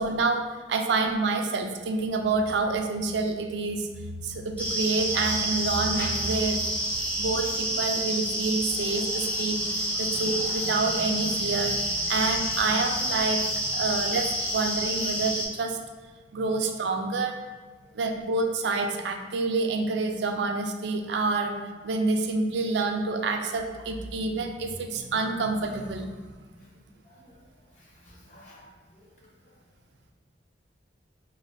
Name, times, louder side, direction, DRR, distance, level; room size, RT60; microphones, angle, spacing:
voice 1, 0.0-3.9 4.2-6.6 7.2-15.8 16.3-17.3 17.9-21.5 21.8-26.1, right 3 dB, 70° right, 4 dB, 0.4 m, -28 dB
sound 1, 4.6-15.5, right 1 dB, 10° left, 0.7 m, -29 dB
voice 2, 27.8-29.1, left 1 dB, 45° left, -5 dB, 0.9 m, -54 dB
4.9 x 2.2 x 2.6 m, 1.3 s
head